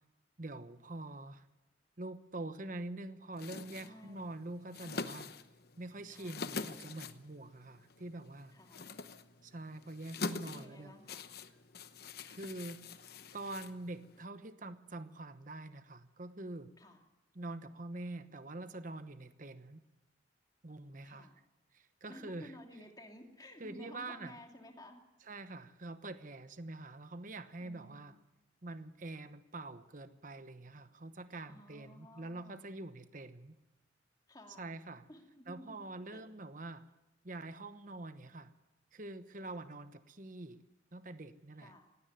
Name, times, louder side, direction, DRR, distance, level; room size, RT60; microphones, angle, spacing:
voice 1, 0.4-1.5 2.0-5.3 5.8-8.6 9.4-10.9 12.3-12.9 13.3-16.7 17.3-19.8 20.6-21.3 21.7-22.5 23.6-24.4 25.3-28.1 28.6-33.6 34.6-35.1 35.5-36.9 37.2-38.5 38.9-40.6 40.9-41.7, right 2 dB, 45° right, 11 dB, 1.0 m, -45 dB
sound 1, 3.3-14.2, left 4 dB, 55° left, 1.0 m, -45 dB
voice 2, 3.8-4.3 6.1-6.4 8.5-8.9 10.4-11.2 12.2-12.5 16.8-17.0 21.0-21.3 22.1-25.0 27.6-28.2 31.5-32.7 34.3-34.8 35.1-35.8 36.1-36.3 39.4-39.7 41.6-41.9, left 1 dB, 20° left, 2 dB, 2.7 m, -54 dB
18.0 x 17.0 x 9.5 m, 0.97 s
head